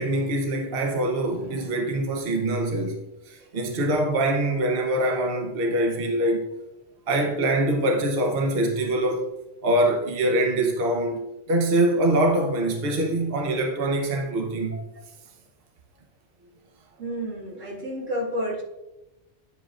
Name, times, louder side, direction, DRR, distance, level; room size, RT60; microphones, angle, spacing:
voice 1, 0.0-6.5 7.1-9.3 9.6-11.2 11.5-14.8, right 1 dB, 55° right, 1.0 m, -24 dB
voice 2, 17.0-18.6, equal, 80° right, 2.0 m, -30 dB
10.0 x 7.4 x 2.5 m
omnidirectional pair, 1.3 m